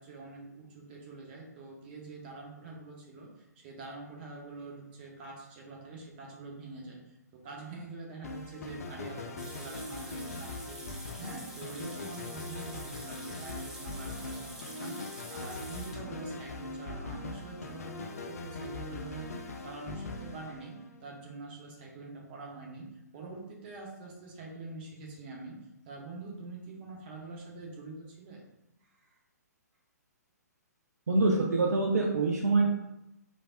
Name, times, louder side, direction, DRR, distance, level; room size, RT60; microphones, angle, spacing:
voice 1, 0.0-28.4 28.8-29.2, right 3 dB, 35° right, -2 dB, 0.7 m, -45 dB
sound 1, 8.2-21.2, left 2 dB, 60° left, 0.4 m, -41 dB
sound 2, 9.4-16.0, right 1 dB, 5° right, 0.5 m, -47 dB
voice 2, 31.1-32.7, right 3 dB, 65° right, 0 dB, 0.4 m, -25 dB
3.2 x 2.5 x 2.4 m, 0.89 s
figure-of-eight pair, 120°, 9 cm